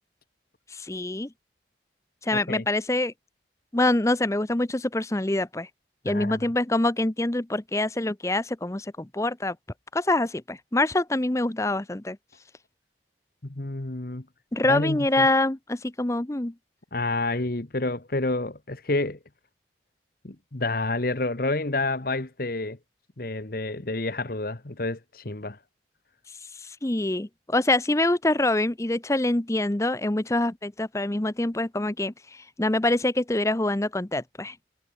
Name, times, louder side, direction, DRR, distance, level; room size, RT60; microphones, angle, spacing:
voice 1, 0.7-1.3 2.2-3.1 3.7-5.7 6.0-9.6 9.9-12.2 14.5-16.5 26.6-34.6, left 2 dB, 15° left, 0.7 m, -25 dB
voice 2, 2.3-2.6 6.0-6.5 13.5-14.2 14.7-15.3 16.9-19.2 20.2-22.8 23.2-25.6, left 2 dB, 50° left, 1.3 m, -29 dB
head